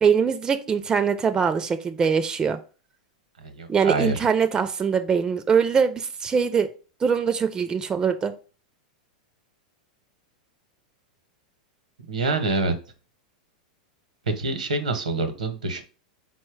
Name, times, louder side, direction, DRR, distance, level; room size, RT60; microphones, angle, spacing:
voice 1, 0.0-2.6 3.7-6.7 7.0-8.3, right 6 dB, 20° right, 9 dB, 0.4 m, -22 dB
voice 2, 3.4-4.2 12.1-12.7 14.3-15.8, right 3 dB, 80° right, 9 dB, 0.8 m, -26 dB
4.3 x 2.2 x 4.5 m, 0.36 s
figure-of-eight pair, 95°, 4 cm